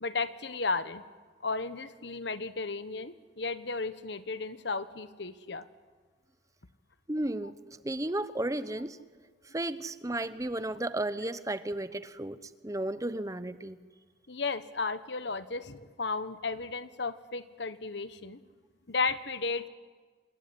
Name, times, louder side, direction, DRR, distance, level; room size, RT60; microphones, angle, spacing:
voice 1, 0.0-1.0 1.4-5.7 14.3-18.4 18.9-19.7, left 4 dB, 65° left, 13 dB, 1.2 m, -34 dB
voice 2, 7.1-7.5 7.8-9.0 9.5-12.4 12.6-13.8, right 1 dB, 20° right, 13 dB, 0.8 m, -33 dB
27.0 x 21.0 x 10.0 m, 1.4 s
head